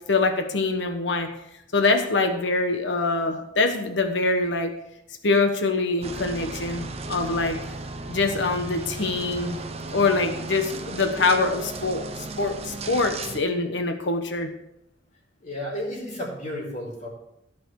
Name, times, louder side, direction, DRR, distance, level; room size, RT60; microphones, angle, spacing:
voice 1, 0.1-1.3 1.7-4.7 5.2-7.6 8.1-9.6 9.9-12.0 12.4-14.5, left 3 dB, 75° left, 6 dB, 1.2 m, -24 dB
sound 1, 6.0-13.4, right 3 dB, 35° right, 0.7 m, -35 dB
voice 2, 15.4-17.1, equal, 40° left, -2 dB, 5.3 m, -32 dB
16.0 x 6.1 x 4.7 m, 0.81 s
head